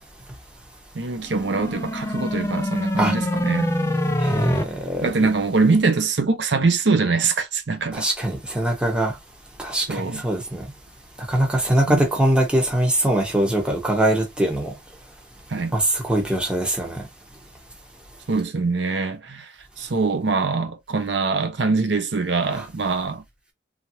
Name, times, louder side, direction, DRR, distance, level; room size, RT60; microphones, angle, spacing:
voice 1, 0.9-3.7 5.0-8.1 9.9-10.2 11.9-12.0 15.5-15.7 18.3-23.2, right 4 dB, 80° right, 0.7 m, -23 dB
sound 1, 1.3-4.6, left 1 dB, 15° left, 0.4 m, -24 dB
voice 2, 4.2-5.3 7.9-9.1 9.6-10.6 11.3-14.7 15.7-17.0 22.5-22.7, right 1 dB, 5° right, 0.9 m, -22 dB
3.1 x 2.6 x 2.7 m
head